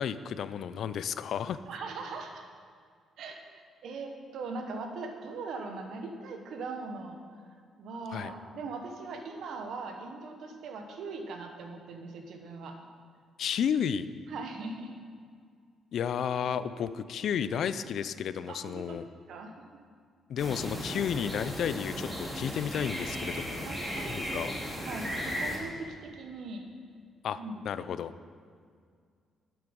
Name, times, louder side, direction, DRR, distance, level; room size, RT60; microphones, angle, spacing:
voice 1, 0.0-1.6 8.1-8.3 13.4-14.1 15.9-19.0 20.3-23.7 24.1-24.5 27.2-27.4 27.7-28.1, left 8 dB, 65° left, 14 dB, 0.5 m, -32 dB
voice 2, 1.6-2.4 3.2-7.2 7.8-12.8 14.3-14.9 18.5-19.0 19.3-19.6 23.6-24.5 24.8-26.6 27.3-27.6, right 3 dB, 75° right, 4 dB, 1.3 m, -40 dB
sound 1, 20.4-25.6, equal, 10° right, 3.1 m, -36 dB
11.5 x 7.8 x 5.3 m, 2.1 s
cardioid pair, 90°, 0 cm